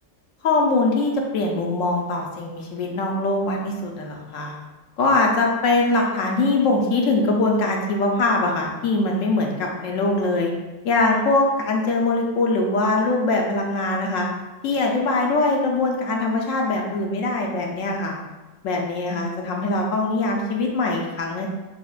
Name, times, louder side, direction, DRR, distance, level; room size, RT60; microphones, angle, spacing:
voice 1, 0.4-4.5 5.0-10.5 10.8-14.3 14.6-18.2 18.6-21.5, left 2 dB, 80° left, 0 dB, 1.0 m, -22 dB
5.7 x 2.0 x 2.3 m, 1.2 s
omnidirectional pair, 1.3 m